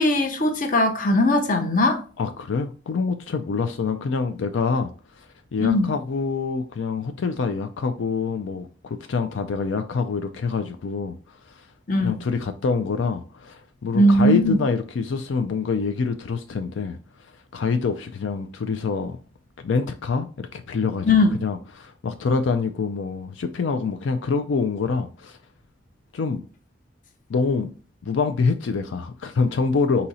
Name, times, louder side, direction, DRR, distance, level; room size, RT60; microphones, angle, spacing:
voice 1, 0.0-2.0 5.6-5.9 11.9-12.2 13.9-14.6 21.0-21.3, left 1 dB, 45° left, 0.7 m, -19 dB
voice 2, 2.2-5.3 5.5-11.2 11.5-11.7 12.0-17.0 17.5-19.2 19.6-21.1 21.4-25.4 26.1-26.5 27.3-27.7 28.0-30.1, left 4 dB, 80° left, 0.4 m, -26 dB
4.1 x 2.8 x 4.1 m
head